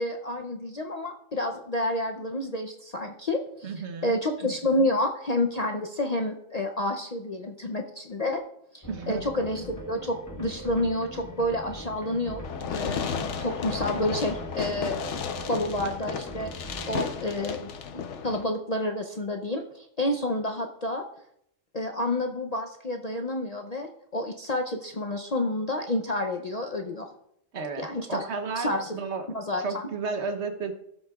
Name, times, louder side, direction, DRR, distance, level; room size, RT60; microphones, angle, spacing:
voice 1, 0.0-3.7 4.0-8.4 8.7-12.4 12.7-15.0 15.5-16.5 16.9-21.1 21.7-27.1 27.8-28.3 28.5-29.0 29.3-29.9, left 1 dB, 45° left, 3 dB, 0.5 m, -29 dB
voice 2, 3.6-4.2 8.9-9.4 27.5-29.2 29.6-30.7, right 4 dB, 60° right, 6 dB, 1.2 m, -33 dB
sound 1, 8.8-17.0, equal, 15° left, 0.9 m, -41 dB
Fireworks, 12.4-18.4, left 7 dB, 65° left, 1.0 m, -33 dB
15.5 x 7.7 x 2.3 m, 0.76 s
omnidirectional pair, 1.3 m